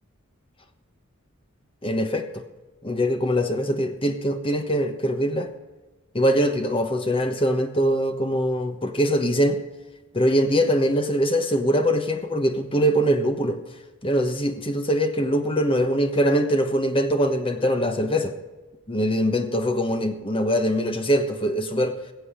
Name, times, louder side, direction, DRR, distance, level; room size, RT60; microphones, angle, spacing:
voice 1, 1.8-2.4 2.8-5.5 6.1-9.6 10.1-13.6 14.0-18.3 18.9-22.0, equal, 25° left, 7 dB, 1.2 m, -22 dB
21.5 x 8.0 x 5.1 m, 1.2 s
head